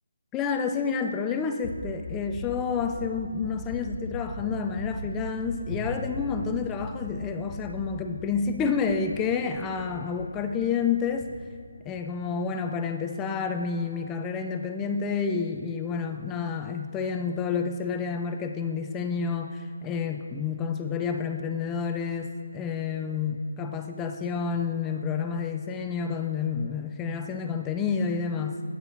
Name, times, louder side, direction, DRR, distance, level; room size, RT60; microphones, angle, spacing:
voice 1, 0.3-11.3 11.9-28.6, left 5 dB, 10° left, 5 dB, 0.3 m, -29 dB
sound 1, 1.6-10.6 10.9-11.3 11.7-12.0, equal, 30° left, 1.3 m, -38 dB
8.9 x 6.8 x 4.2 m, 2.4 s
hypercardioid pair, 175°, 0 cm